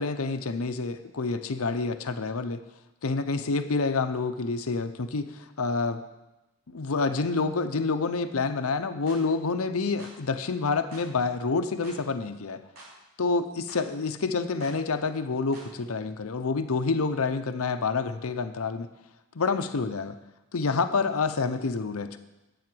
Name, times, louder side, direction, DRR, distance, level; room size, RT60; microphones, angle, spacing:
voice 1, 0.0-2.6 3.0-6.0 6.7-12.6 13.2-18.9 19.3-20.2 20.5-22.2, left 4 dB, 90° left, 9 dB, 0.7 m, -28 dB
sound 1, 9.1-9.2 10.0-10.2 10.9-11.1 11.8-12.0 12.8-12.9 13.7-13.9 14.6-14.8 15.5-15.7, right 2 dB, 85° right, 3.6 m, -47 dB
9.2 x 7.5 x 7.8 m, 0.99 s
head